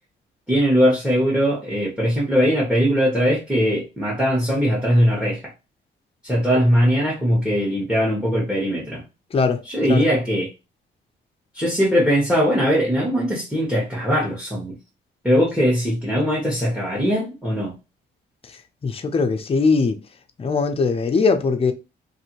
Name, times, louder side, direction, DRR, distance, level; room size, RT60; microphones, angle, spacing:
voice 1, 0.5-5.4 6.2-9.0 9.6-10.5 11.5-14.8 15.2-17.8, equal, 5° right, 1.2 m, -20 dB
voice 2, 18.8-20.0 20.4-21.7, left 4 dB, 30° left, 0.5 m, -20 dB
2.6 x 2.6 x 2.9 m
cardioid pair, 90°, 20 cm